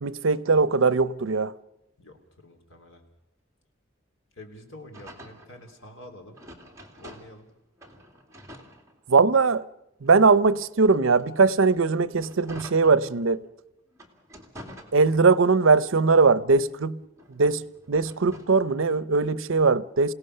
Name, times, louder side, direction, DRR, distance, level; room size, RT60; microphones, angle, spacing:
voice 1, 0.0-1.5 9.1-9.6 10.0-13.4 14.9-17.0 17.3-20.1, right 4 dB, 80° right, 0.7 m, -20 dB
voice 2, 2.0-3.0 4.4-6.4 7.0-7.5, left 1 dB, 80° left, 3.5 m, -47 dB
sound 1, 4.9-7.5 7.8-9.5 10.0-13.5 13.9-15.6 16.0-18.6, equal, 15° right, 2.5 m, -48 dB
28.0 x 17.5 x 6.7 m
head